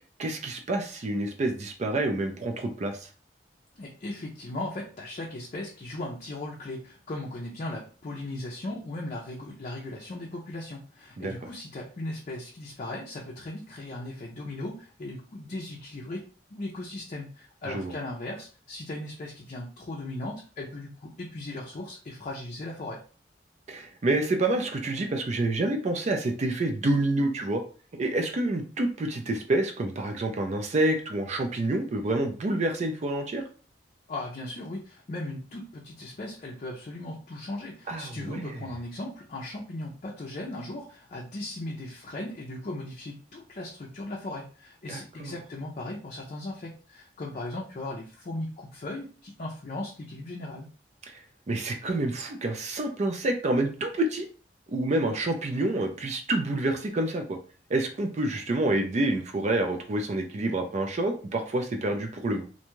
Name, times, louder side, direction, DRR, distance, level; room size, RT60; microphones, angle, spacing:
voice 1, 0.2-3.1 11.2-11.3 17.7-17.9 23.7-27.6 28.0-33.4 37.9-38.6 44.9-45.3 51.0-51.2 51.5-54.3 54.7-57.4 57.7-62.4, right 2 dB, 40° right, 4 dB, 0.4 m, -28 dB
voice 2, 3.8-23.0 34.1-50.7, left 2 dB, 45° left, -2 dB, 0.5 m, -37 dB
2.6 x 2.2 x 2.9 m, 0.39 s
head